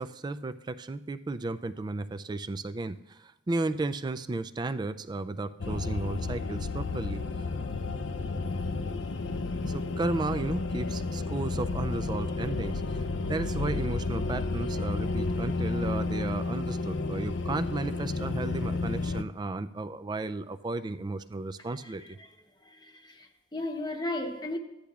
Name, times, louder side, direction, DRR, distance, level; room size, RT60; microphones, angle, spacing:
voice 1, 0.0-7.2 9.6-12.7 13.3-22.2, right 2 dB, 25° right, 0.3 m, -34 dB
sound 1, 5.6-19.2, left 3 dB, 70° left, 0.5 m, -31 dB
voice 2, 22.8-24.6, left 1 dB, 25° left, 0.9 m, -34 dB
15.0 x 10.0 x 2.4 m
head